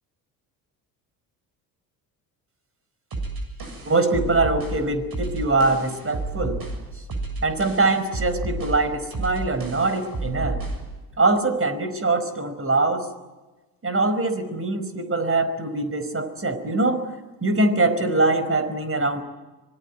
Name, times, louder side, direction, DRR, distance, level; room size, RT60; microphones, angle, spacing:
sound 1, 3.1-10.9, right 2 dB, 45° right, 7.7 m, -31 dB
voice 1, 3.8-6.6 7.4-10.6 11.2-13.1 13.8-17.1 17.4-19.2, right 2 dB, 25° right, 11 dB, 4.8 m, -23 dB
25.5 x 21.0 x 9.4 m, 1.2 s
hypercardioid pair, 55°, 49 cm